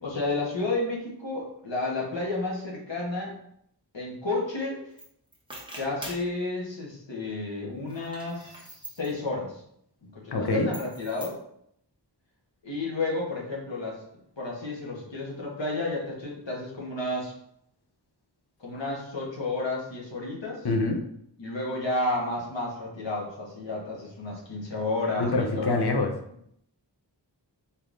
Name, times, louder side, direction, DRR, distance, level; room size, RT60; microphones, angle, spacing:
voice 1, 0.0-3.3 3.9-4.8 5.8-9.6 10.0-11.4 12.6-14.0 14.4-17.3 18.6-20.7 21.4-25.7, left 2 dB, 80° left, -3 dB, 1.3 m, -31 dB
sound 1, 5.0-5.1 5.3-6.3 7.8-9.1 10.7-11.3, right 1 dB, 10° right, 1.0 m, -43 dB
voice 2, 10.3-10.7 20.6-21.0 25.2-26.1, left 2 dB, 65° left, 4 dB, 0.7 m, -25 dB
4.3 x 3.5 x 2.6 m, 0.70 s
wide cardioid pair, 40°, 44 cm